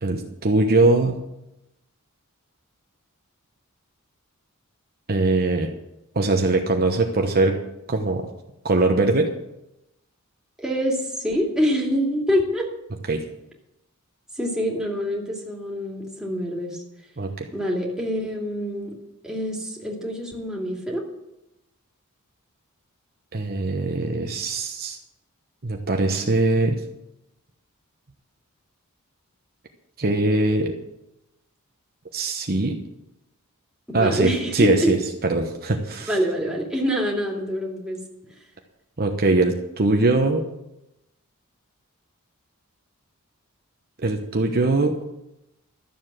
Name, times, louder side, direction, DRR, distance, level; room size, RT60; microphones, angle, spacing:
voice 1, 0.0-1.2 5.1-5.7 6.1-7.6 7.9-8.3 8.6-9.3 13.1-13.2 17.2-17.5 23.3-25.0 25.6-26.8 30.0-30.7 32.1-32.8 33.9-35.0 35.2-36.2 39.0-40.4 44.0-45.0, right 2 dB, 45° right, 3 dB, 1.1 m, -21 dB
voice 2, 10.6-12.7 14.4-16.8 17.5-19.0 19.2-21.0 33.9-34.9 36.1-38.0, equal, 5° right, -2 dB, 2.7 m, -25 dB
13.0 x 7.4 x 7.5 m, 0.88 s
head